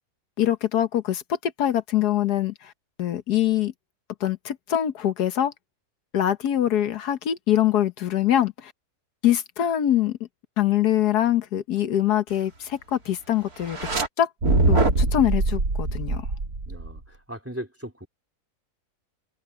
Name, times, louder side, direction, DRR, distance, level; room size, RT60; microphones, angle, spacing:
voice 1, 0.4-2.7 3.0-3.7 4.2-5.5 6.1-8.7 9.2-10.2 10.6-13.8 14.2-14.3 14.7-16.3, left 11 dB, 80° left, 1.6 m, -23 dB
sound 1, 13.6-14.1 14.4-17.0, right 2 dB, 70° right, 3.6 m, -23 dB
voice 2, 16.7-18.1, equal, 10° right, 3.7 m, -38 dB
omnidirectional pair, 1.7 m